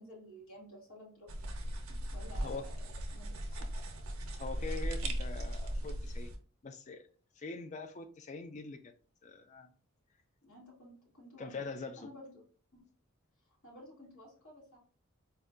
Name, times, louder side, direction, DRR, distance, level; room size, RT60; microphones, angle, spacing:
voice 1, 0.0-1.3 1.9-3.4 10.4-11.5 12.0-12.3 12.7-12.8 13.6-14.8, equal, 80° left, 1.5 m, -53 dB
sound 1, 1.3-6.4, equal, 75° right, 0.6 m, -38 dB
voice 2, 2.3-2.6 3.5-3.7 4.3-6.3 6.6-7.0 7.4-8.9 9.2-9.7 11.4-12.0, left 4 dB, 35° left, 0.3 m, -43 dB
4.4 x 2.2 x 2.4 m
head